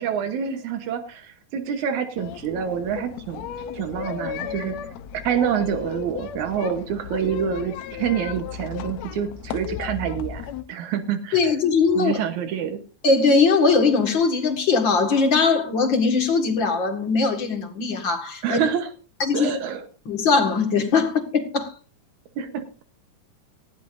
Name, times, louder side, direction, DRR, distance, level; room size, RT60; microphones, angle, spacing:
voice 1, 0.0-3.5 3.7-4.7 5.2-11.5 12.0-12.8 18.4-18.9 19.3-19.9 22.4-22.8, right 8 dB, 80° right, 2.5 m, -27 dB
sound 1, 2.2-10.6, left 8 dB, 75° left, 1.9 m, -35 dB
voice 2, 11.3-12.1 13.0-18.6 19.2-19.5 20.1-21.7, left 4 dB, 45° left, 2.2 m, -20 dB
18.5 x 14.0 x 2.6 m
omnidirectional pair, 3.4 m